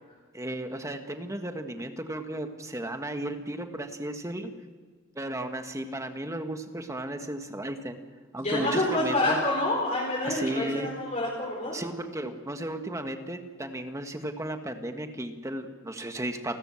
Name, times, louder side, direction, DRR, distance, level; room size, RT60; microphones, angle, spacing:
voice 1, 0.3-4.5 5.2-8.0 8.3-9.4 10.2-10.9 11.7-16.6, right 1 dB, 15° right, 6 dB, 1.6 m, -34 dB
voice 2, 8.4-11.7, left 1 dB, 35° left, -4 dB, 4.6 m, -27 dB
29.5 x 13.5 x 7.7 m, 1.5 s
head